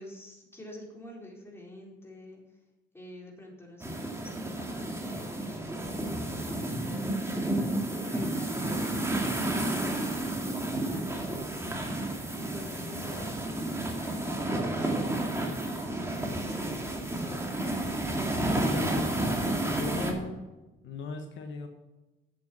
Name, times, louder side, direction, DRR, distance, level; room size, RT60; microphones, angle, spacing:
voice 1, 0.0-2.4 2.9-7.8 8.1-17.2, left 1 dB, 10° left, -2 dB, 4.1 m, -48 dB
sound 1, 3.8-20.1, right 1 dB, 15° right, 2.4 m, -31 dB
voice 2, 18.3-19.4 19.7-20.4 20.8-21.7, left 4 dB, 75° left, 4 dB, 1.4 m, -38 dB
8.4 x 8.0 x 6.3 m, 1.1 s
cardioid pair, 90°, 20 cm